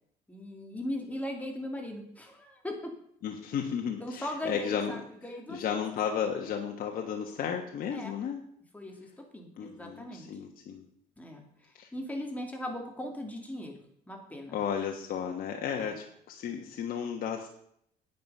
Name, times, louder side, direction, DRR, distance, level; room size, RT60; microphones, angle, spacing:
voice 1, 0.3-2.9 4.0-5.6 7.9-8.2 8.7-10.3 11.2-13.8 14.1-14.6 15.8-16.0, left 1 dB, 10° left, 2 dB, 2.6 m, -39 dB
voice 2, 3.2-4.9 5.5-8.4 9.6-10.9 11.8-11.9 14.5-17.5, left 7 dB, 60° left, 2 dB, 1.4 m, -33 dB
9.4 x 9.2 x 5.5 m, 0.68 s
cardioid pair, 110°, 17 cm